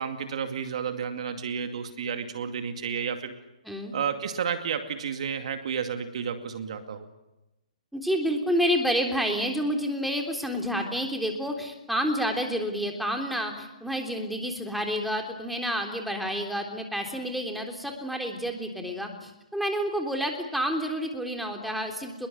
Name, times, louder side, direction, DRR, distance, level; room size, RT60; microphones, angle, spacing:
voice 1, 0.0-3.4 3.9-7.1, right 7 dB, 55° right, 7 dB, 2.4 m, -31 dB
voice 2, 7.9-22.3, equal, ahead, 3 dB, 3.5 m, -29 dB
26.0 x 21.5 x 8.6 m, 0.96 s
hypercardioid pair, 135°, 4 cm